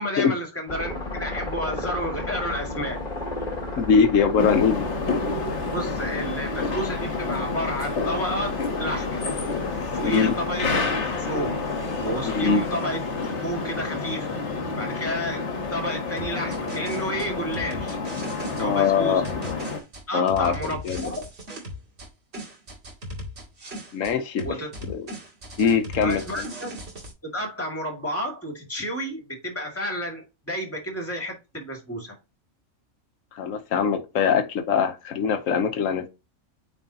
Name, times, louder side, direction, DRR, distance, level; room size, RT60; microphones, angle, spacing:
voice 1, 0.0-3.0 5.7-9.2 9.9-10.7 11.2-11.6 12.0-13.0 13.4-15.4 15.7-18.0 18.6-19.2 20.1-21.2 24.4-24.7 26.0-26.7 27.2-32.2, equal, 10° left, 2.3 m, -31 dB
sound 1, 0.7-12.7, left 2 dB, 30° left, 1.7 m, -35 dB
voice 2, 3.8-4.9 10.0-10.4 12.2-12.6 18.6-19.3 20.1-21.1 23.9-24.5 24.9-25.1 25.6-26.5 33.3-36.1, left 6 dB, 75° left, 1.3 m, -22 dB
sound 2, 4.4-19.8, left 4 dB, 55° left, 1.6 m, -29 dB
sound 3, 16.2-18.7 19.2-22.1 22.3-24.1 24.4-27.1, equal, 50° right, 2.3 m, -37 dB
9.0 x 4.2 x 2.9 m
omnidirectional pair, 1.4 m